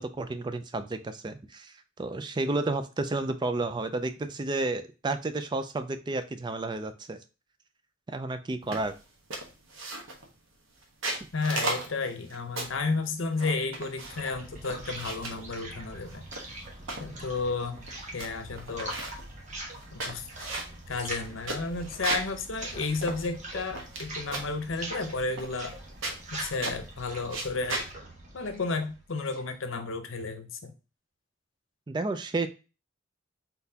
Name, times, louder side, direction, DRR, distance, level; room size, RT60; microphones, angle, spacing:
voice 1, 0.0-7.2 8.1-8.9 31.9-32.5, right 2 dB, 20° right, 10 dB, 0.3 m, -31 dB
sound 1, 8.7-9.0 9.3-10.3 10.8-12.9 13.4-14.3 14.6-15.4 16.1-17.1 17.6-17.7 17.9-18.3 18.6-19.3 19.8-22.4 22.7-22.8 23.0-24.0 24.3-24.6 25.4-25.8 26.0-26.9 27.3-27.9, right 2 dB, 85° right, 1.1 m, -35 dB
voice 2, 11.3-16.5 17.0-17.9 18.1-19.0 19.9-20.5 20.9-25.7 26.3-27.8 28.3-30.7, left 3 dB, 80° left, 7 dB, 0.7 m, -32 dB
sound 2, 13.7-29.5, right 1 dB, 40° right, 1.3 m, -43 dB
4.0 x 4.0 x 2.7 m, 0.32 s
head